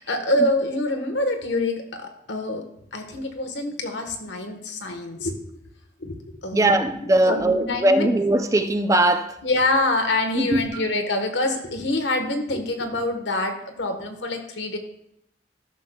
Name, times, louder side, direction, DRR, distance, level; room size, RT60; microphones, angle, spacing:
voice 1, 0.0-2.6 2.9-5.4 6.0-8.1 9.4-14.8, left 2 dB, 85° left, 1.2 m, -26 dB
voice 2, 6.5-9.4 10.3-10.6, right 1 dB, 20° right, 0.5 m, -20 dB
14.0 x 6.6 x 2.3 m
head